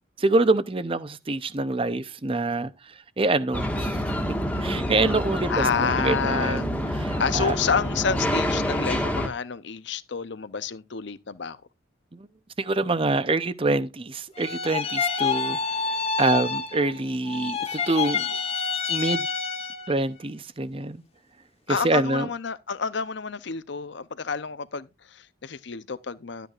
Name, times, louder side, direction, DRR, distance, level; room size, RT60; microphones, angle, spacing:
voice 1, 0.2-2.7 3.2-4.0 4.6-7.6 12.1-12.3 12.6-18.3 18.9-19.3 19.9-21.0 21.7-22.3, right 2 dB, 25° right, 0.6 m, -26 dB
sound 1, 3.5-9.3, equal, 5° left, 1.5 m, -27 dB
voice 2, 5.5-6.6 6.9-11.6 21.7-26.5, left 5 dB, 60° left, 0.6 m, -29 dB
sound 2, 14.3-17.0 17.2-20.0, left 5 dB, 30° left, 1.1 m, -28 dB
12.5 x 9.1 x 2.4 m
head